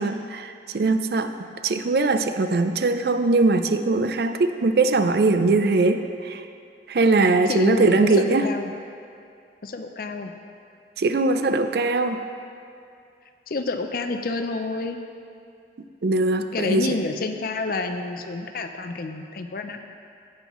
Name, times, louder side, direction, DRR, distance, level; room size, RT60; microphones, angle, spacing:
voice 1, 0.0-1.3 1.6-6.4 6.9-8.5 11.0-12.2 16.0-17.0, right 3 dB, 60° right, 9 dB, 0.4 m, -21 dB
voice 2, 7.5-8.7 9.6-10.3 13.5-15.0 16.5-19.8, left 3 dB, 55° left, 6 dB, 0.5 m, -29 dB
16.0 x 5.4 x 3.1 m, 2.5 s
head